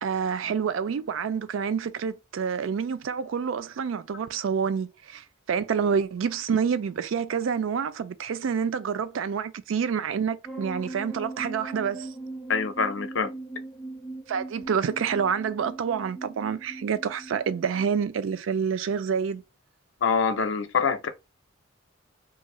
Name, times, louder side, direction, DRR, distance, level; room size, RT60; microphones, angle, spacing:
voice 1, 0.0-12.1 14.3-19.4, right 6 dB, 75° right, 0.4 m, -28 dB
sound 1, 10.4-17.9, right 2 dB, ahead, 0.4 m, -40 dB
voice 2, 12.5-13.3 20.0-21.1, left 5 dB, 70° left, 0.5 m, -25 dB
2.6 x 2.4 x 2.9 m
head